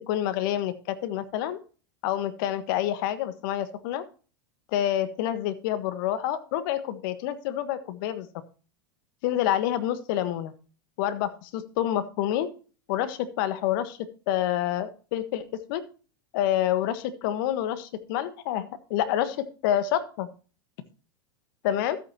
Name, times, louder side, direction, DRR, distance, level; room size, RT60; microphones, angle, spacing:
voice 1, 0.1-1.6 2.0-4.0 4.7-8.3 9.2-10.5 11.0-12.5 12.9-14.0 14.3-15.4 15.7-15.8 16.3-20.3 21.6-22.0, left 11 dB, 60° left, 12 dB, 1.4 m, -28 dB
13.5 x 8.5 x 2.9 m, 0.37 s
hypercardioid pair, 90°, 12 cm